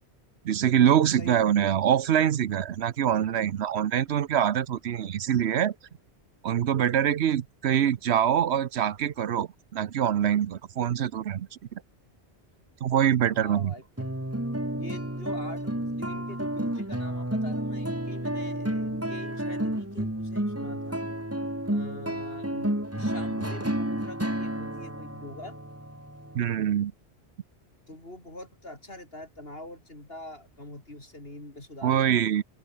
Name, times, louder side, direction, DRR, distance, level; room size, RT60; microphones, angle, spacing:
voice 1, 0.4-5.7 6.4-11.5 12.8-13.7 26.3-26.9 31.8-32.4, right 9 dB, 75° right, 1.0 m, -24 dB
voice 2, 1.2-1.7 13.3-13.8 14.7-21.0 21.7-25.6 27.9-32.4, left 1 dB, 60° left, 7.2 m, -44 dB
sound 1, 14.0-26.7, right 1 dB, 15° right, 2.8 m, -31 dB
omnidirectional pair, 1.1 m